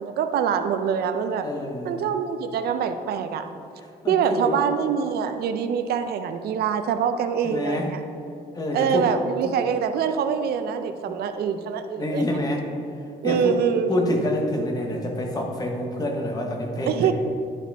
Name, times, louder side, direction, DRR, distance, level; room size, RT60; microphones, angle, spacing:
voice 1, 0.0-1.5 1.8-3.5 4.1-8.0 8.7-12.3 13.2-13.9 16.8-17.1, right 7 dB, 75° right, 8 dB, 0.5 m, -24 dB
voice 2, 1.4-2.0 4.0-4.6 7.4-7.9 8.5-9.1 9.4-9.5 11.1-11.2 12.0-12.6 13.2-13.6 13.9-17.1, left 1 dB, 25° left, 1 dB, 0.8 m, -27 dB
11.0 x 4.9 x 3.4 m, 2.6 s
cardioid pair, 180°, 16 cm